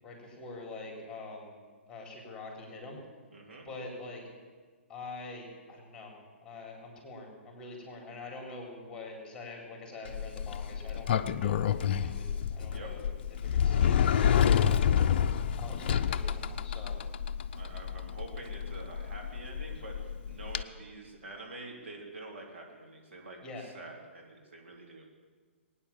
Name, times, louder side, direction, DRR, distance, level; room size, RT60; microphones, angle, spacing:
voice 1, 0.0-1.5 1.9-3.0 3.6-4.2 4.9-6.1 6.4-13.1 13.4-14.8 15.6-17.0 23.4-23.6, left 3 dB, 10° left, 0 dB, 4.2 m, -45 dB
voice 2, 3.3-3.7 12.6-12.9 17.6-25.0, right 2 dB, 65° right, 0 dB, 3.4 m, -47 dB
Sliding door, 10.1-20.6, left 8 dB, 50° left, 0.6 m, -29 dB
20.5 x 9.8 x 7.3 m, 1.5 s
figure-of-eight pair, 120°, 7 cm